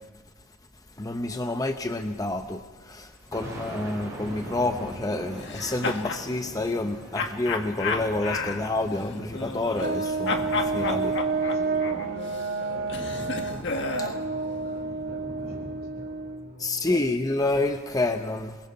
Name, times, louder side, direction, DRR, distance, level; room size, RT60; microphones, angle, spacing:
voice 1, 1.0-11.1 16.6-18.6, left 2 dB, 15° left, 6 dB, 0.7 m, -28 dB
Thunder, 2.9-17.5, right 1 dB, 15° right, 6.7 m, -42 dB
sound 1, 5.4-6.3 7.1-10.0 10.3-14.2, left 4 dB, 60° left, 1.5 m, -32 dB
Brass instrument, 9.8-16.5, right 4 dB, 60° right, 1.4 m, -30 dB
voice 2, 10.7-16.9, left 2 dB, 80° left, -1 dB, 7.4 m, -45 dB
27.5 x 21.0 x 5.6 m, 1.3 s
head